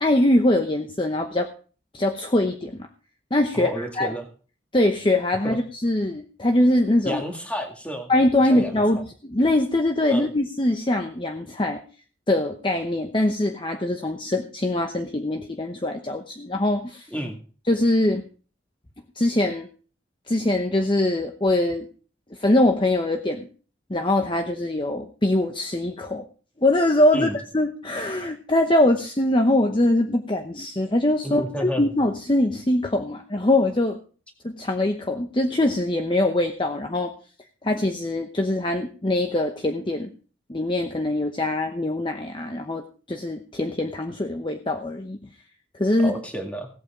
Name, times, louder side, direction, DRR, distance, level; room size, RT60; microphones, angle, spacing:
voice 1, 0.0-1.5 1.9-2.9 3.3-4.1 4.7-7.2 8.1-9.0 9.3-11.8 12.3-17.1 17.7-18.2 19.2-19.7 20.3-21.9 22.4-23.5 23.9-26.2 26.6-34.0 34.4-37.1 37.6-40.1 40.5-45.2 45.8-46.1, left 1 dB, 25° left, 5 dB, 0.9 m, -22 dB
voice 2, 3.5-4.3 5.4-5.6 7.0-8.1 8.4-8.8 10.1-10.3 17.1-17.4 27.1-27.4 31.2-31.9 46.0-46.7, equal, 5° left, 3 dB, 2.0 m, -30 dB
17.0 x 8.3 x 5.0 m, 0.39 s
head